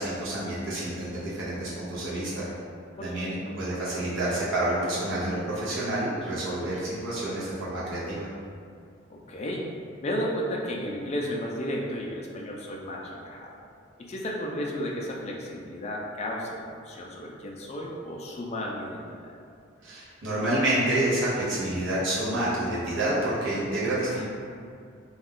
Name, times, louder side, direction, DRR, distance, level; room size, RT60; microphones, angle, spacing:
voice 1, 0.0-2.5 3.0-8.3 19.8-24.3, right 1 dB, 70° right, -9 dB, 0.7 m, -28 dB
voice 2, 3.0-3.6 9.1-9.7 10.0-13.6 14.0-19.3 24.1-24.3, equal, 35° left, -2 dB, 0.3 m, -33 dB
2.4 x 2.2 x 3.4 m, 2.3 s
head